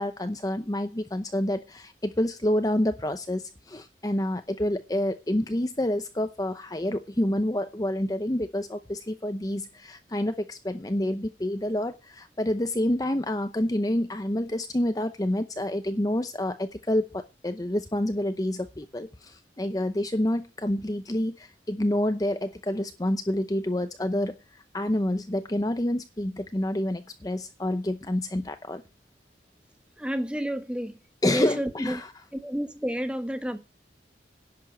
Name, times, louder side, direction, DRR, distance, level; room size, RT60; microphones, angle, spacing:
voice 1, 0.0-28.8 31.2-32.1, left 1 dB, 20° left, 0.7 m, -28 dB
voice 2, 30.0-31.0 31.2-32.0 32.3-33.6, equal, 5° right, 1.4 m, -30 dB
11.0 x 6.8 x 7.8 m
head